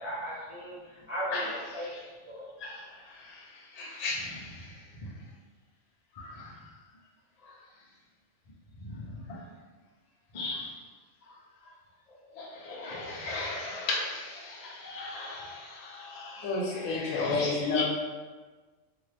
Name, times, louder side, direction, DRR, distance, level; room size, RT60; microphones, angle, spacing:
voice 1, 0.0-1.9 2.3-2.5, equal, 40° right, -10 dB, 0.5 m, -37 dB
voice 2, 2.6-5.1 6.1-6.6 7.4-7.5 8.8-9.4 10.3-10.8 12.3-17.3 17.7-17.8, left 3 dB, 50° left, -3 dB, 0.5 m, -38 dB
voice 3, 16.4-17.8, left 3 dB, 90° left, -2 dB, 1.1 m, -29 dB
2.7 x 2.6 x 3.2 m, 1.3 s
omnidirectional pair, 1.4 m